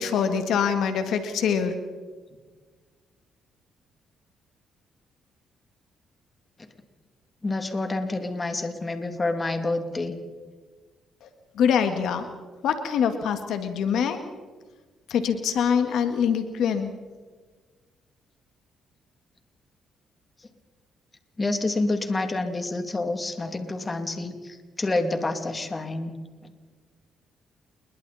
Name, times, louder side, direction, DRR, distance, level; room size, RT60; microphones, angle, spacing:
voice 1, 0.0-1.8 11.2-11.3 11.6-12.3 12.6-14.2 15.1-16.9, left 7 dB, 75° left, 7 dB, 1.9 m, -24 dB
voice 2, 7.4-10.2 21.4-26.2, left 2 dB, 25° left, 6 dB, 2.7 m, -28 dB
29.0 x 22.0 x 4.3 m, 1.4 s
cardioid pair, 90°, 0 cm